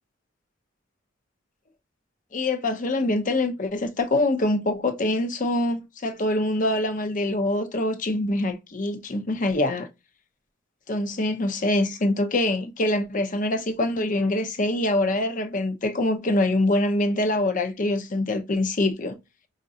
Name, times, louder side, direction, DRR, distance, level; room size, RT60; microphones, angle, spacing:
voice 1, 2.3-9.9 10.9-19.1, left 1 dB, 40° left, 0.7 m, -24 dB
5.1 x 2.5 x 2.7 m
head